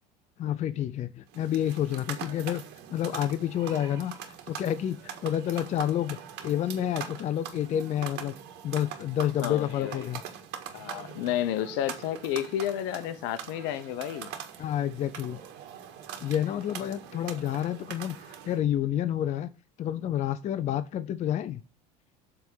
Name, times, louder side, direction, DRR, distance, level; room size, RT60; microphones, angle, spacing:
voice 1, 0.4-2.6 2.9-5.0 5.2-6.2 6.4-8.3 8.6-10.2 14.6-15.4 16.2-19.5 19.8-21.6, left 11 dB, 40° left, 0.5 m, -29 dB
sound 1, 1.3-18.6, right 8 dB, 65° right, 1.7 m, -43 dB
voice 2, 9.4-10.1 10.7-14.3, left 11 dB, 70° left, 0.9 m, -31 dB
7.7 x 3.6 x 6.1 m
supercardioid pair, 90°, 19 cm